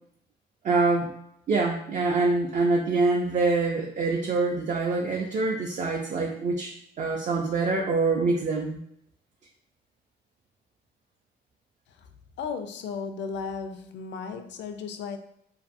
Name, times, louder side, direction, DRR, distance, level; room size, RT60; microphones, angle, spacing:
voice 1, 0.6-1.1 1.5-8.8, right 3 dB, 40° right, 0 dB, 0.4 m, -25 dB
voice 2, 12.4-15.2, left 5 dB, 65° left, 7 dB, 0.4 m, -35 dB
2.6 x 2.4 x 2.5 m, 0.72 s
cardioid pair, 90°, 20 cm